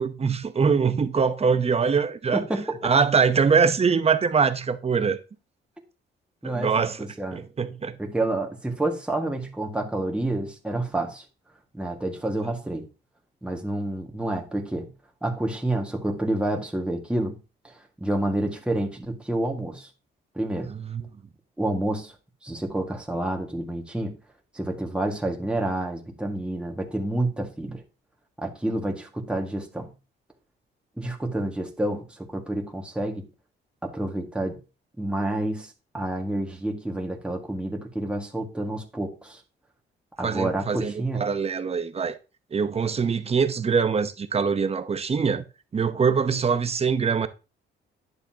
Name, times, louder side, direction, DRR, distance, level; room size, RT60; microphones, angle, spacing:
voice 1, 0.0-2.4 2.8-5.2 6.4-7.1 7.3-8.0 20.8-21.0 40.2-42.2 42.5-45.4 45.7-47.3, right 5 dB, 30° right, 0.9 m, -23 dB
voice 2, 2.3-2.9 6.4-7.4 8.0-11.2 11.7-12.8 13.4-14.9 15.2-17.4 17.6-17.7 18.0-19.9 20.4-20.7 21.6-22.1 22.4-24.2 24.5-27.8 28.4-29.9 31.0-33.3 33.8-34.6 35.0-39.4 40.2-41.3, right 1 dB, 5° right, 1.8 m, -29 dB
9.9 x 6.8 x 2.9 m
cardioid pair, 90°, 20 cm